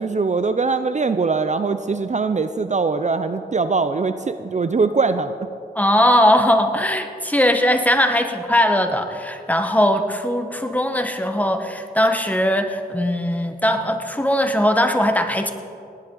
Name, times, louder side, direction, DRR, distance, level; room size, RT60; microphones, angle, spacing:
voice 1, 0.0-5.5, right 4 dB, 45° right, 10 dB, 0.5 m, -22 dB
voice 2, 5.7-15.5, equal, 10° left, 6 dB, 1.2 m, -19 dB
18.5 x 10.5 x 3.9 m, 2.4 s
cardioid pair, 50°, 17 cm